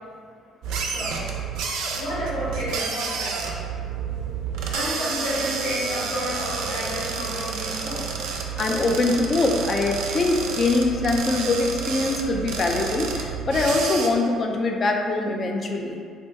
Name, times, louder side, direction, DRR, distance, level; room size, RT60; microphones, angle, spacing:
sound 1, 0.6-14.1, right 5 dB, 70° right, 0.3 m, -30 dB
voice 1, 0.9-1.3 1.6-1.7 2.0-3.5 4.6-8.0, equal, 80° left, -8 dB, 1.2 m, -31 dB
voice 2, 8.6-16.0, left 2 dB, 45° left, 2 dB, 0.4 m, -23 dB
2.7 x 2.1 x 3.3 m, 2.2 s
hypercardioid pair, 55°, 0 cm